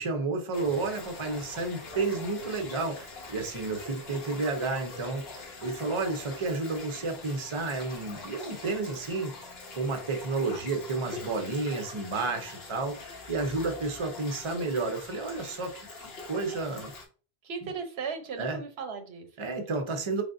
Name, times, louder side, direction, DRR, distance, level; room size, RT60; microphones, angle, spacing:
voice 1, 0.0-5.2 5.6-16.9 17.6-17.7 18.3-18.6 19.4-20.2, right 3 dB, 35° right, 5 dB, 0.6 m, -31 dB
sound 1, 0.5-17.1, left 3 dB, 80° left, 1.1 m, -44 dB
voice 2, 17.4-19.5, right 5 dB, 90° right, 6 dB, 1.0 m, -37 dB
3.7 x 3.3 x 2.5 m, 0.37 s
omnidirectional pair, 1.0 m